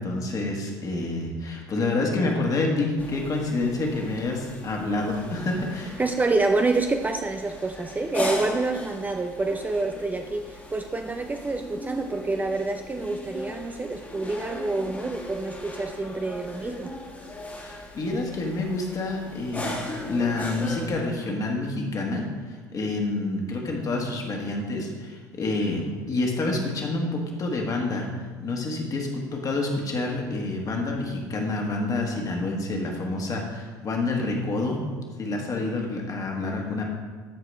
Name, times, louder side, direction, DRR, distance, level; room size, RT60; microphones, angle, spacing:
voice 1, 0.0-5.9 17.5-19.8 20.0-28.1 28.4-34.8 35.2-36.8, left 2 dB, 35° left, 0 dB, 1.8 m, -28 dB
sound 1, 3.0-20.9, left 1 dB, 15° left, 1.7 m, -38 dB
voice 2, 6.0-16.9, right 3 dB, 15° right, 5 dB, 0.5 m, -27 dB
13.0 x 4.8 x 3.4 m, 1.5 s
hypercardioid pair, 65°, 10 cm